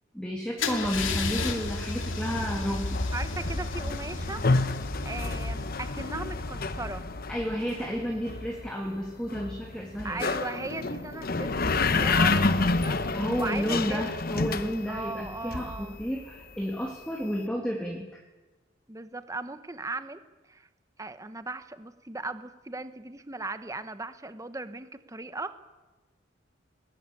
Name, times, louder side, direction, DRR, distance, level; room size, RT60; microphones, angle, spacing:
voice 1, 0.1-3.0 7.3-10.3 13.1-18.2, equal, 5° left, 0 dB, 2.5 m, -32 dB
Car / Engine starting / Idling, 0.6-6.4, left 3 dB, 80° left, 2.4 m, -34 dB
sound 1, 0.8-16.3, left 3 dB, 50° left, 1.0 m, -30 dB
voice 2, 0.9-1.2 3.1-4.4 5.0-7.0 10.0-14.1 14.9-16.0 18.9-20.2 20.5-20.7 21.0-25.6, right 3 dB, 15° right, 10 dB, 1.1 m, -38 dB
20.5 x 20.0 x 9.9 m, 1.2 s
head